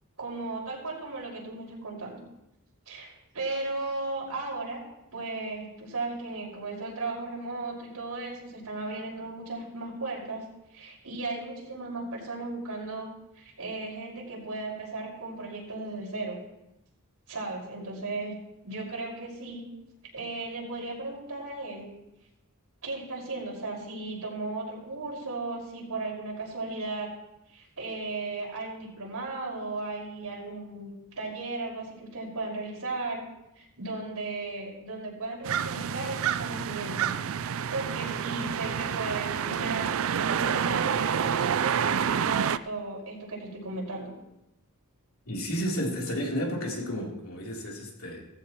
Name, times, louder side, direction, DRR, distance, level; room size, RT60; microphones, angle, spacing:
voice 1, 0.2-2.2 2.9-4.8 5.1-10.4 10.7-13.1 13.3-16.4 17.3-18.3 18.6-19.6 20.1-21.9 22.8-27.1 27.5-30.9 31.2-33.2 33.5-37.1 37.7-39.9 40.2-41.2 41.6-44.1, right 3 dB, 90° right, -2 dB, 5.4 m, -36 dB
sound 1, 35.5-42.6, right 7 dB, 65° right, 0.4 m, -28 dB
voice 2, 45.3-48.2, equal, 65° left, -2 dB, 3.4 m, -32 dB
17.5 x 15.0 x 3.1 m, 0.89 s
head